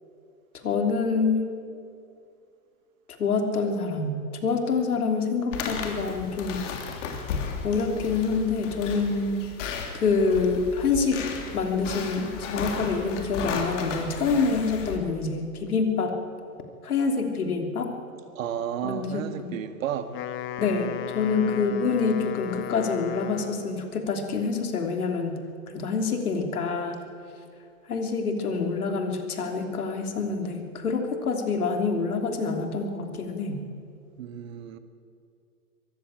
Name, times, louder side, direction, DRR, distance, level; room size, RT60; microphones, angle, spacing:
voice 1, 0.6-1.5 3.1-6.7 7.6-9.5 9.9-11.2 11.5-16.1 16.8-17.9 18.8-19.6 20.6-25.4 25.7-27.0 27.9-33.6, left 4 dB, 75° left, 5 dB, 3.2 m, -26 dB
sound 1, 5.5-15.0, left 6 dB, 55° left, 3.3 m, -34 dB
voice 2, 18.4-20.1 34.2-34.8, right 9 dB, 60° right, 10 dB, 1.8 m, -32 dB
Wind instrument woodwind instrument, 20.0-23.8, left 12 dB, 25° left, 1.1 m, -36 dB
22.5 x 15.0 x 8.9 m, 2.4 s
hypercardioid pair, 110°, 45 cm